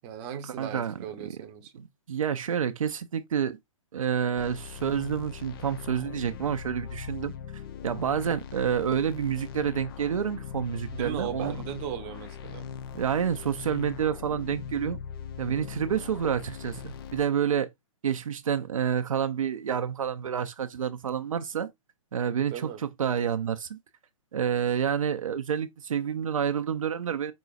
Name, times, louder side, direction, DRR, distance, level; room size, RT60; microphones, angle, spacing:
voice 1, 0.0-1.8 10.9-12.7 22.4-22.8, right 9 dB, 30° right, 0.8 m, -37 dB
voice 2, 0.6-1.4 2.1-3.6 3.9-7.3 7.8-11.6 12.9-15.0 15.4-17.7 18.0-21.7 22.1-23.8 24.3-27.3, right 8 dB, 75° right, 0.5 m, -28 dB
sound 1, 4.3-17.2, left 7 dB, 45° left, 0.6 m, -40 dB
5.1 x 3.8 x 2.4 m
hypercardioid pair, 130°, 18 cm